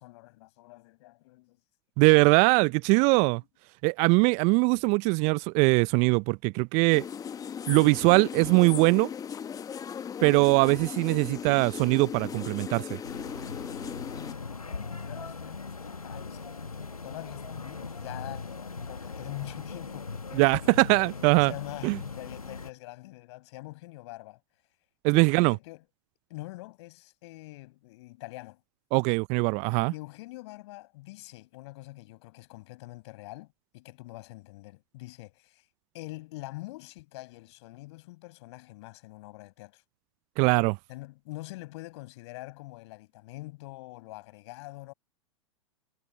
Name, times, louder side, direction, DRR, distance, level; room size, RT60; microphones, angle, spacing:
voice 1, 0.0-1.6 3.0-3.4 14.2-20.8 21.4-24.4 25.1-25.8 26.3-28.6 29.9-33.5 33.7-35.7 35.9-39.8 40.9-44.9, left 21 dB, 50° left, 6.2 m, -44 dB
voice 2, 2.0-3.4 3.8-7.0 7.7-9.1 10.2-13.0 20.3-21.5 21.8-22.0 25.0-25.5 28.9-29.9 40.4-40.8, right 32 dB, 40° right, 1.0 m, -22 dB
sound 1, 6.9-14.3, left 7 dB, 20° left, 1.4 m, -37 dB
sound 2, 13.0-22.7, left 4 dB, 85° left, 1.4 m, -40 dB
figure-of-eight pair, 95°, 18 cm